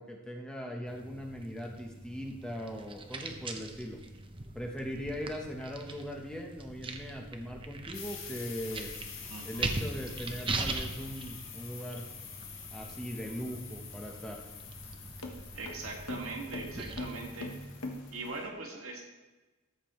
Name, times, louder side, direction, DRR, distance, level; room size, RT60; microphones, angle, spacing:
voice 1, 0.0-4.0 4.5-8.9 9.4-12.1 12.7-14.4, equal, 5° left, 1 dB, 0.9 m, -40 dB
sound 1, 0.9-17.8, right 2 dB, 25° right, 0.7 m, -41 dB
sound 2, 7.9-18.4, left 6 dB, 60° left, 1.6 m, -47 dB
voice 2, 9.3-9.7 15.5-17.5 18.1-19.0, right 2 dB, 70° right, 0 dB, 1.8 m, -41 dB
sound 3, 13.7-18.5, left 2 dB, 80° left, 1.2 m, -43 dB
13.5 x 7.5 x 3.1 m, 1.2 s
head